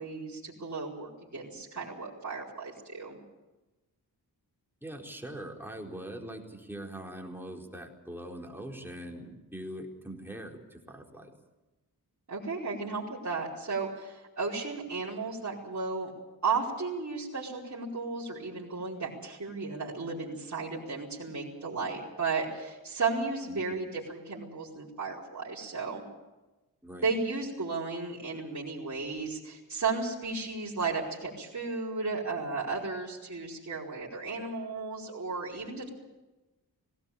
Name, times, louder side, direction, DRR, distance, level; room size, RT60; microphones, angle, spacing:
voice 1, 0.0-3.2 12.3-16.1 16.4-26.0 26.9-35.9, right 4 dB, 45° right, -6 dB, 4.9 m, -34 dB
voice 2, 4.8-11.3 23.5-23.8 26.8-27.2, right 1 dB, 5° right, 0 dB, 4.3 m, -42 dB
18.5 x 18.0 x 8.6 m, 1.1 s
cardioid pair, 70°, 38 cm